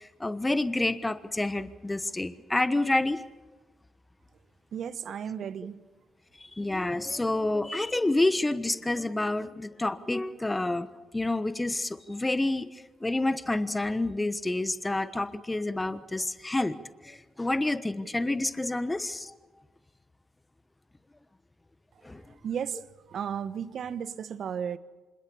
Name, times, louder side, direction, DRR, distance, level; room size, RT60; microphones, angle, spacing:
voice 1, 0.0-3.2 6.6-10.9 11.1-12.7 13.0-16.8 17.0-19.3 22.0-22.2, left 2 dB, 20° left, 1.2 m, -28 dB
voice 2, 4.7-5.8 22.4-22.8 23.1-24.8, right 8 dB, 65° right, 1.2 m, -34 dB
26.5 x 21.0 x 7.0 m
hypercardioid pair, 50°, 0 cm